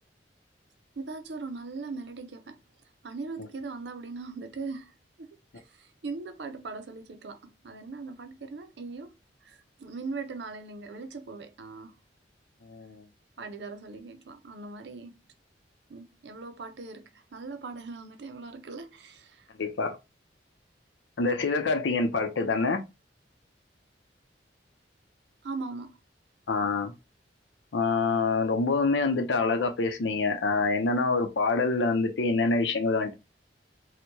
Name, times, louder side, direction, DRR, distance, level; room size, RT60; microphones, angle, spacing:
voice 1, 1.0-2.6 3.0-9.2 9.4-12.0 13.4-15.2 15.9-19.5 25.4-26.0, right 3 dB, 70° right, 0.6 m, -40 dB
voice 2, 12.7-13.0 19.6-20.0 21.2-22.8 26.5-26.9 27.7-33.1, left 3 dB, 90° left, 0.6 m, -26 dB
4.4 x 2.2 x 2.7 m
head